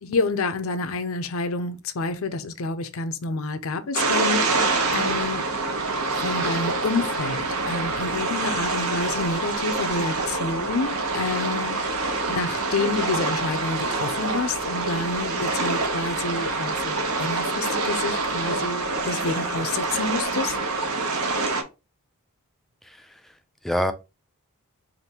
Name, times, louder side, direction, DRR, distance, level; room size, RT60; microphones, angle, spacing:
voice 1, 0.0-5.5 6.2-11.8 12.3-20.6, left 3 dB, 65° left, 0.6 m, -29 dB
sound 1, 3.9-21.6, right 3 dB, 70° right, 0.9 m, -26 dB
voice 2, 22.8-23.9, equal, ahead, 0.3 m, -28 dB
5.0 x 2.6 x 2.8 m
head